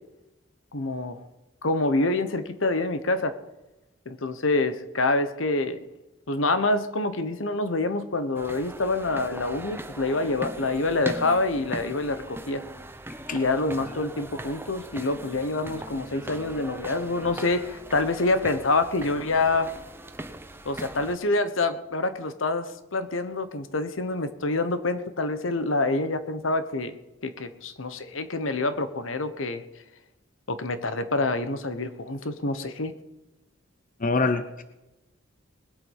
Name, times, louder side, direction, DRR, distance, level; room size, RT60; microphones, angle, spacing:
voice 1, 0.7-1.2 1.6-3.4 4.0-5.9 6.3-12.6 13.3-19.7 20.6-26.9 27.2-29.6 30.5-32.9, left 2 dB, 80° left, 11 dB, 1.2 m, -26 dB
sound 1, 8.3-21.1, right 1 dB, 10° right, 0.9 m, -40 dB
voice 2, 34.0-34.6, left 3 dB, 45° left, 10 dB, 0.8 m, -25 dB
20.5 x 8.3 x 5.6 m, 0.97 s
head